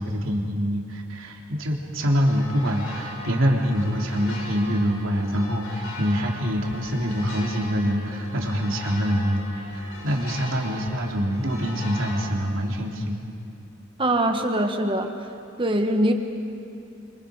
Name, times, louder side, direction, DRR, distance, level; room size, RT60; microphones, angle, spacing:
voice 1, 0.0-13.3, equal, 90° right, 0 dB, 3.2 m, -25 dB
sound 1, 2.0-12.3, left 1 dB, 75° left, 7.1 m, -39 dB
voice 2, 14.0-15.1 15.6-16.1, right 1 dB, 25° right, 5 dB, 1.6 m, -22 dB
29.5 x 25.5 x 5.1 m, 2.6 s
head